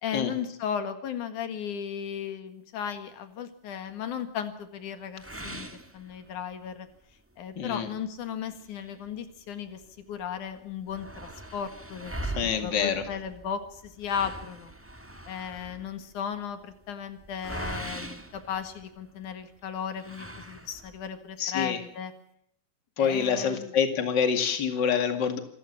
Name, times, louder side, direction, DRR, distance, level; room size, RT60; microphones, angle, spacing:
voice 1, 0.0-5.7 5.9-6.9 7.4-9.8 10.1-14.7 15.3-22.1 23.0-23.7, left 8 dB, 90° left, 9 dB, 3.3 m, -35 dB
sound 1, 5.2-6.7 7.1-7.2 7.6-7.7 8.5-9.9 10.2-10.3 10.5-19.2 19.9-21.1, right 1 dB, 10° right, 0.6 m, -41 dB
voice 2, 7.6-7.9 12.3-13.0 21.4-21.8 23.0-25.4, left 7 dB, 40° left, 7 dB, 2.6 m, -26 dB
27.0 x 14.5 x 7.3 m, 0.71 s
omnidirectional pair, 3.4 m